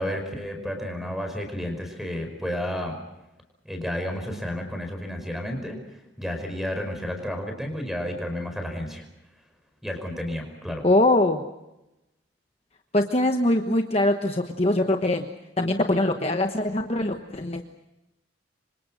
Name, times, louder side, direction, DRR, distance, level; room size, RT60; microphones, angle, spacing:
voice 1, 0.0-3.0 3.6-9.0 9.8-10.8, equal, ahead, 5 dB, 5.3 m, -31 dB
voice 2, 10.8-11.4 12.9-15.3 15.6-17.6, left 1 dB, 30° left, 5 dB, 1.2 m, -22 dB
27.5 x 25.0 x 6.3 m, 0.94 s
head